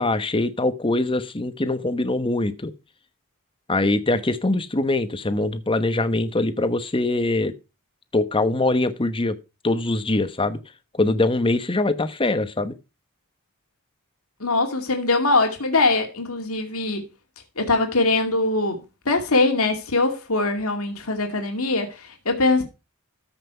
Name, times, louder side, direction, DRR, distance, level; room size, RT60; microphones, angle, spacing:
voice 1, 0.0-2.7 3.7-7.5 8.1-9.4 9.6-10.6 10.9-12.7, left 2 dB, 25° left, 1.1 m, -23 dB
voice 2, 14.4-17.0 17.6-18.8 19.1-22.6, left 3 dB, 80° left, 2.3 m, -22 dB
14.0 x 6.0 x 4.4 m
head